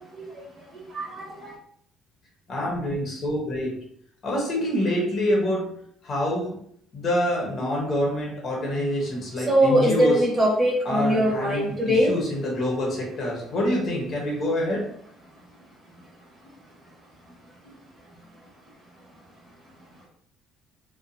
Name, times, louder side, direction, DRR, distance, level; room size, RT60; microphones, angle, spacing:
voice 1, 0.9-1.5 9.5-12.1, equal, 15° right, -4 dB, 1.0 m, -21 dB
voice 2, 2.5-3.8 4.2-5.7 6.0-6.6 6.9-10.2 10.8-14.9, left 1 dB, 40° left, -2 dB, 0.9 m, -26 dB
2.6 x 2.4 x 2.6 m, 0.66 s
cardioid pair, 130°, 0 cm